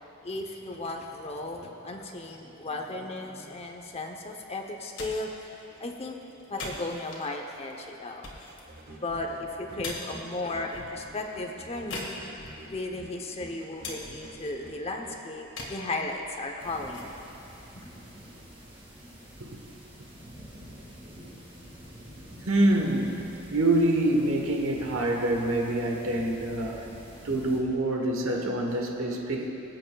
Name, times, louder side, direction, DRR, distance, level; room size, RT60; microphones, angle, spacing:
voice 1, 0.2-6.2 6.5-8.3 9.0-12.1 12.6-17.1 17.7-17.9, left 2 dB, 30° left, 3 dB, 0.7 m, -35 dB
sound 1, 4.8-18.6, left 2 dB, 65° left, 1.7 m, -45 dB
sound 2, 8.7-15.2, right 1 dB, 45° right, 1.3 m, -48 dB
sound 3, 16.6-27.6, equal, 25° right, 2.1 m, -47 dB
voice 2, 22.5-26.9 27.2-29.5, right 1 dB, 85° right, 1 dB, 1.2 m, -26 dB
23.0 x 7.8 x 2.3 m, 3.0 s
head